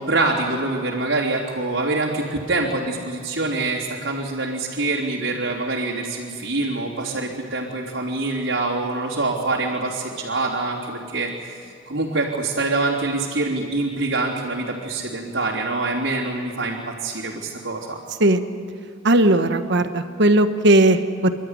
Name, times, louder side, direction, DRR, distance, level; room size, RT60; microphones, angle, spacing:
voice 1, 0.1-11.6 11.9-18.0, right 2 dB, 85° right, -7 dB, 3.3 m, -25 dB
voice 2, 19.0-21.3, right 1 dB, 65° right, 9 dB, 1.3 m, -17 dB
28.5 x 12.5 x 9.8 m, 2.3 s
head